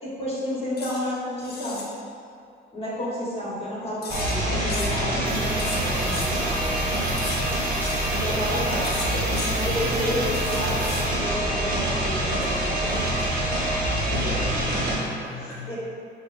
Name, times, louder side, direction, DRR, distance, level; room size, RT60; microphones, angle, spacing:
voice 1, 0.0-1.8 2.7-6.7 8.2-9.2 9.5-13.2 14.2-14.4 15.7-15.8, left 1 dB, 30° left, -7 dB, 1.1 m, -31 dB
sound 1, 0.8-1.0 1.4-1.9 4.0-5.0 5.6-6.3 7.2-7.4 7.8-8.0 8.8-9.5 10.3-11.1 12.4-13.5, left 4 dB, 55° left, 0.5 m, -36 dB
sound 2, 4.1-15.0, right 1 dB, 45° right, 0.8 m, -25 dB
sound 3, 5.2-11.1, right 3 dB, 80° right, 0.7 m, -40 dB
voice 2, 14.0-15.8, left 3 dB, 5° right, -10 dB, 0.7 m, -36 dB
5.3 x 2.0 x 2.5 m, 2.4 s
cardioid pair, 90°, 20 cm